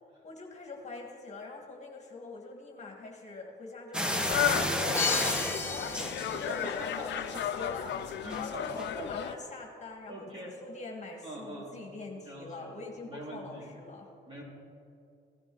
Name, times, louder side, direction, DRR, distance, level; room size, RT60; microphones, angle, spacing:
voice 1, 0.2-14.1, left 3 dB, 35° left, 1 dB, 1.7 m, -44 dB
sound 1, 3.9-6.8 7.2-7.6 8.3-8.4 8.8-8.9, equal, 5° right, 1.1 m, -32 dB
sound 2, 4.3-9.3, left 10 dB, 60° left, 0.6 m, -34 dB
Crash cymbal, 4.9-6.8, left 3 dB, 10° left, 1.4 m, -33 dB
voice 2, 6.3-7.6 8.2-9.1 10.1-10.5 11.2-11.7 12.3-12.8 13.1-13.7 14.3-14.4, right 1 dB, 25° right, -3 dB, 3.5 m, -43 dB
16.0 x 12.0 x 3.8 m, 2.5 s
cardioid pair, 95°, 21 cm